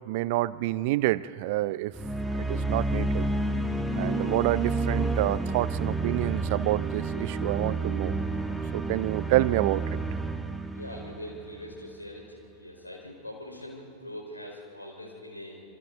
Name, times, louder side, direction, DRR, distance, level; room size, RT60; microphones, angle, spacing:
voice 1, 0.1-1.9 2.3-3.3 4.0-8.2 8.7-9.8, right 17 dB, 50° right, 18 dB, 0.5 m, -28 dB
sound 1, 1.9-12.0, right 2 dB, 5° right, 1.2 m, -30 dB
voice 2, 10.7-15.6, left 1 dB, 85° left, 0 dB, 4.7 m, -42 dB
27.5 x 24.0 x 4.0 m, 2.3 s
figure-of-eight pair, 90°, 0 cm